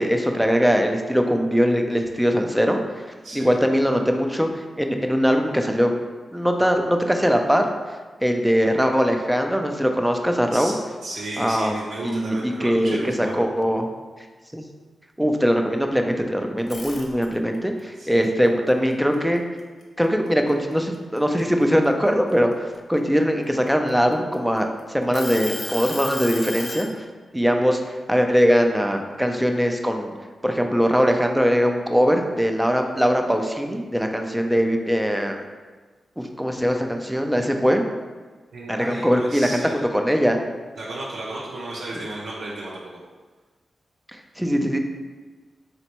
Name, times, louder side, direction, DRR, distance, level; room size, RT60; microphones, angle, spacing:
voice 1, 0.0-2.8 3.3-5.9 6.3-7.7 8.2-10.7 11.4-13.9 14.5-14.6 15.2-19.4 20.0-26.9 27.3-30.1 30.4-35.4 36.2-37.8 38.7-39.6 39.9-40.4 44.1-44.8, equal, 5° right, 4 dB, 0.5 m, -21 dB
voice 2, 3.2-3.6 10.5-10.7 11.0-13.5 17.9-18.2 27.3-27.5 38.5-39.7 40.8-43.0, right 2 dB, 85° right, -6 dB, 0.6 m, -33 dB
sound 1, 16.6-17.6 18.0-19.8 20.3-20.5 20.9-22.8 23.5-24.6 25.1-26.9, left 2 dB, 60° left, 0.7 m, -34 dB
4.2 x 3.3 x 3.0 m, 1.3 s
cardioid pair, 50°, 0 cm